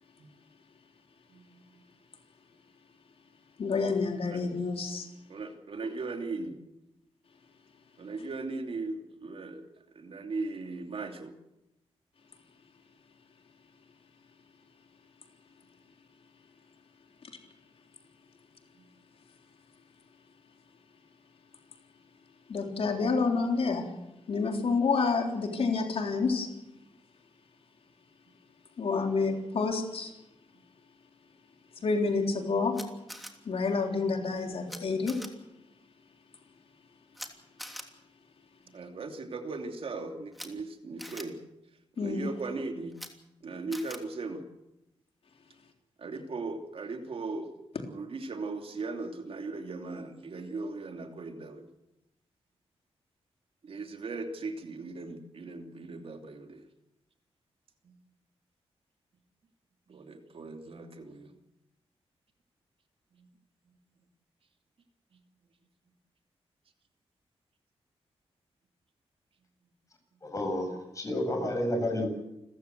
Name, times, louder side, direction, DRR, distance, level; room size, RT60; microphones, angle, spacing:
voice 1, 1.3-1.8 4.3-4.4 5.3-6.6 8.0-9.7 9.9-11.3 38.7-41.4 42.0-42.9 43.4-44.4 46.0-47.5 47.9-51.7 53.6-56.6 57.8-57.9 59.9-61.3 63.1-63.3, right 3 dB, 60° right, 5 dB, 2.8 m, -38 dB
voice 2, 3.6-5.1 17.2-17.3 22.5-23.9 24.3-26.5 28.8-30.1 31.8-32.8 33.5-35.2 42.0-42.3, left 4 dB, 65° left, 3 dB, 3.7 m, -28 dB
Camera, 32.7-33.3 34.7-34.8 35.1-35.3 37.1-37.3 37.6-37.8 40.3-40.5 41.0-41.2 42.9-43.1 43.7-44.0, equal, ahead, 3.0 m, -42 dB
voice 3, 70.2-72.1, left 1 dB, 30° left, 4 dB, 7.8 m, -30 dB
29.0 x 15.0 x 8.0 m, 0.92 s
wide cardioid pair, 100°, 11 cm